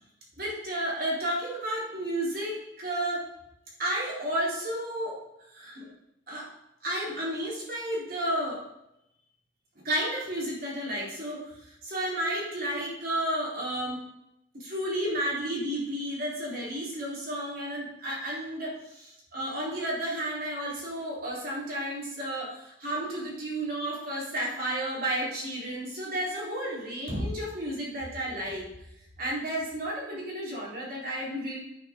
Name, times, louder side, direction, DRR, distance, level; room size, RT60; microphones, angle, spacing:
voice 1, 0.4-3.2 3.8-5.2 5.5-5.9 6.3-6.5 6.8-8.6 9.8-14.0 14.6-28.6 29.2-31.6, right 1 dB, 55° right, -5 dB, 4.3 m, -32 dB
9.9 x 9.5 x 3.9 m, 0.83 s
head